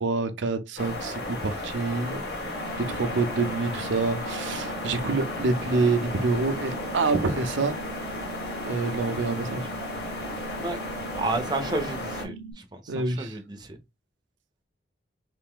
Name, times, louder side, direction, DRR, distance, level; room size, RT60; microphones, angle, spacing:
voice 1, 0.0-2.2 2.8-7.8 8.7-9.7 12.9-13.3, right 3 dB, 85° right, 0.5 m, -27 dB
sound 1, 0.8-12.3, left 2 dB, 55° left, 1.5 m, -34 dB
sound 2, 2.5-12.5, right 5 dB, 25° left, 0.9 m, -41 dB
voice 2, 11.1-12.3 12.7-13.7, right 2 dB, 20° right, 0.5 m, -31 dB
3.2 x 2.6 x 3.6 m
head